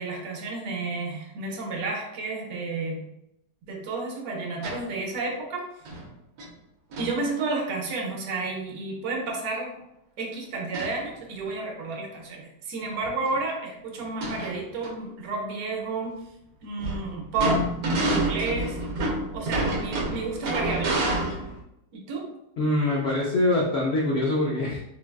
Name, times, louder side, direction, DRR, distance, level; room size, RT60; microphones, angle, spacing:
voice 1, 0.0-3.0 3.7-5.7 7.0-9.7 10.2-16.2 16.6-17.7 18.0-18.8 19.3-21.0 21.9-22.3, right 3 dB, 70° right, 0 dB, 1.2 m, -31 dB
sound 1, 4.6-4.9 5.8-6.0 6.4-6.5 6.9-7.2 10.7-11.0 11.4-11.5 12.8-12.9 13.3-13.4 14.0-14.9 16.8-21.6, right 2 dB, 90° right, 1.3 m, -28 dB
voice 2, 22.6-24.8, left 1 dB, 80° left, -3 dB, 0.5 m, -24 dB
4.0 x 2.2 x 2.2 m, 0.81 s
omnidirectional pair, 1.8 m